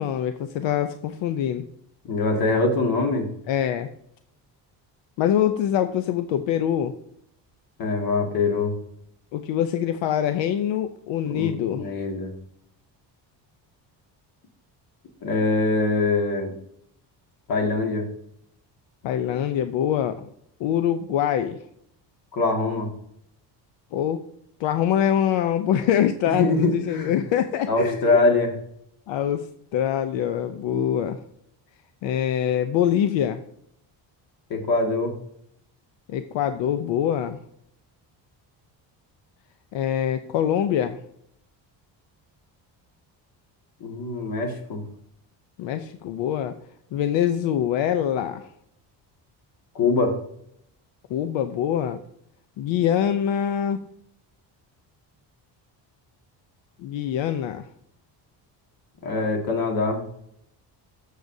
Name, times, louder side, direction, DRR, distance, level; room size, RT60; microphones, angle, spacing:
voice 1, 0.0-1.7 3.5-3.9 5.2-6.9 9.3-11.8 19.0-20.3 20.6-21.6 23.9-24.2 24.6-28.2 29.1-29.5 29.7-31.2 32.0-33.4 36.1-37.4 39.7-41.0 45.6-46.6 46.9-48.5 51.1-52.0 52.6-53.8 56.8-57.7, left 10 dB, 85° left, 9 dB, 0.7 m, -24 dB
voice 2, 2.0-3.3 7.8-8.7 11.3-12.3 15.2-16.5 17.5-18.1 22.3-22.9 26.3-27.1 27.7-28.5 34.5-35.1 43.8-44.8 49.8-50.1 59.0-60.0, left 3 dB, 50° left, 3 dB, 1.9 m, -23 dB
13.5 x 6.5 x 2.7 m, 0.72 s
cardioid pair, 150°, 44 cm